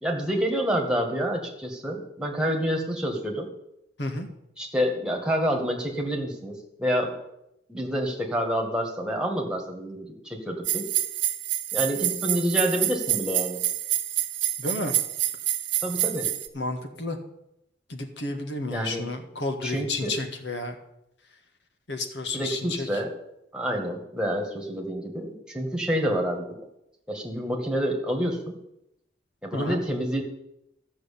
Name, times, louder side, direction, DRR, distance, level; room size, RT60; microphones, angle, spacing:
voice 1, 0.0-3.5 4.6-7.2 7.7-10.9 11.7-13.6 15.8-16.3 18.7-19.1 19.6-20.1 22.3-23.1 23.5-26.6 27.1-28.6 29.4-30.2, equal, 5° right, 1 dB, 1.9 m, -28 dB
sound 1, 10.6-16.5, right 13 dB, 90° right, 1.1 m, -27 dB
voice 2, 14.6-14.9 16.5-17.2 17.9-20.7 21.9-22.9 29.5-29.8, left 2 dB, 70° left, 5 dB, 1.7 m, -31 dB
13.5 x 6.2 x 8.6 m, 0.84 s
head